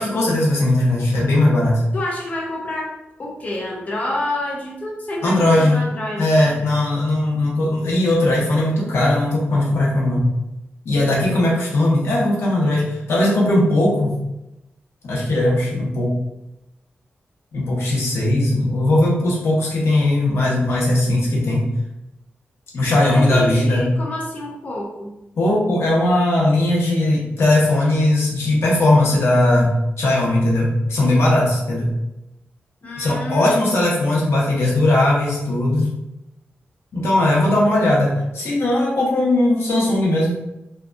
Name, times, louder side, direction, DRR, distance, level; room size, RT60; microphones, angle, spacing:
voice 1, 0.0-1.8 5.2-5.8 6.2-10.3 10.8-14.1 15.0-16.1 17.5-21.7 22.7-23.9 25.4-31.9 33.0-35.9 36.9-40.3, left 1 dB, 90° left, -4 dB, 0.8 m, -18 dB
voice 2, 1.9-6.6 23.0-25.1 32.8-33.6, left 1 dB, 35° left, -2 dB, 0.4 m, -28 dB
2.7 x 2.2 x 2.4 m, 0.91 s
wide cardioid pair, 175°, 4 cm